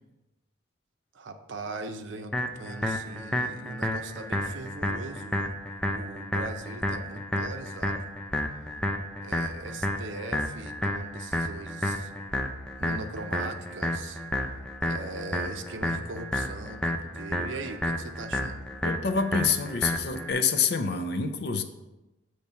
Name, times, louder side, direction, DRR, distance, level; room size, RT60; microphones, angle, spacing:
voice 1, 1.1-5.6 5.9-8.1 9.2-12.1 12.8-14.2 14.8-18.7, right 3 dB, 90° right, 8 dB, 0.6 m, -40 dB
sound 1, 2.3-20.3, left 1 dB, 5° left, 0.4 m, -31 dB
voice 2, 18.8-21.6, left 5 dB, 60° left, 7 dB, 0.5 m, -27 dB
6.8 x 3.2 x 5.5 m, 1.0 s
head